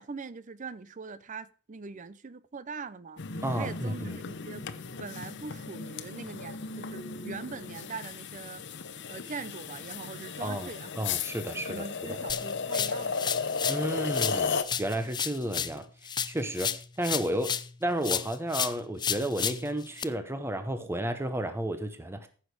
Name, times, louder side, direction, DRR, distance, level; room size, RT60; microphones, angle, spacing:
voice 1, 0.0-3.2 3.6-4.7 5.0-8.6 9.1-10.9 11.6-13.7, right 4 dB, 35° right, 0.5 m, -42 dB
sound 1, 3.2-14.6, left 5 dB, 55° left, 0.9 m, -35 dB
voice 2, 3.4-4.2 10.4-10.7 11.0-12.2 13.7-15.9 16.3-22.3, right 1 dB, 10° right, 0.8 m, -32 dB
sound 2, 12.3-13.8 14.1-17.7 18.0-20.0, left 8 dB, 20° left, 0.4 m, -32 dB
14.5 x 6.3 x 4.8 m
head